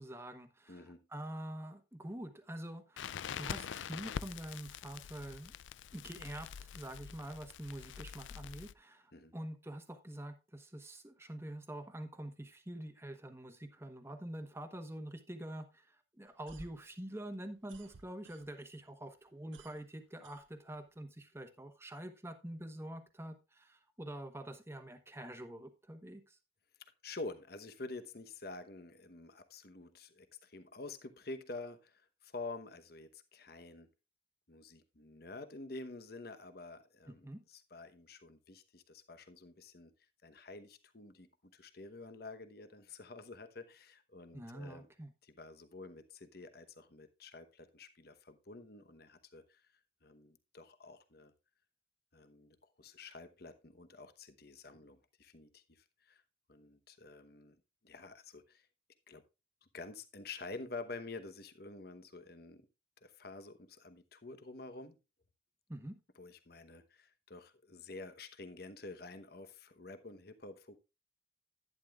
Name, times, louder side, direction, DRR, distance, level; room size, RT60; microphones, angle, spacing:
voice 1, 0.0-5.5 5.9-26.4 37.1-37.4 44.3-45.1 65.7-66.0, right 1 dB, 15° right, 1.1 m, -46 dB
voice 2, 0.7-1.0 9.1-9.3 27.0-33.9 34.5-39.9 40.2-44.9 45.2-49.7 50.0-51.3 52.1-56.2 56.5-57.6 57.8-58.7 59.1-59.2 59.7-62.7 63.0-65.0 66.2-70.8, left 3 dB, 55° left, 1.0 m, -49 dB
Crackle, 3.0-8.7, left 8 dB, 80° left, 0.4 m, -45 dB
sound 1, 16.3-18.8 19.1-21.0, right 3 dB, 80° right, 0.7 m, -58 dB
11.0 x 10.5 x 2.4 m
head